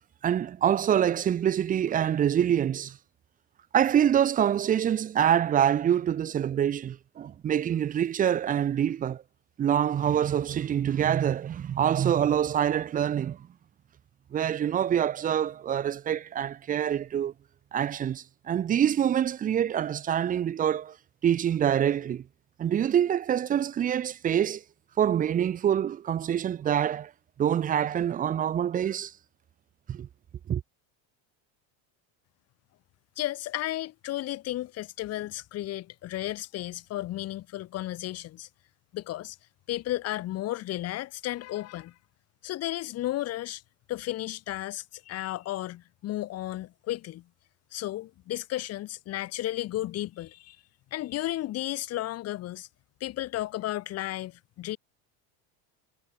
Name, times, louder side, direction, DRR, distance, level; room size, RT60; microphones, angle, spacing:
voice 1, 0.2-3.0 3.7-9.2 9.6-13.4 14.3-17.3 17.7-21.0 21.2-22.2 22.6-24.6 25.0-27.1 27.4-29.1 29.9-30.1 30.5-30.6, right 9 dB, 20° right, 0.8 m, -25 dB
voice 2, 33.2-38.5 38.9-39.4 39.7-41.9 42.4-43.6 43.9-47.2 47.7-50.6 50.9-52.7 53.0-54.8, left 15 dB, 40° left, 2.5 m, -33 dB
cardioid pair, 170°, 40 cm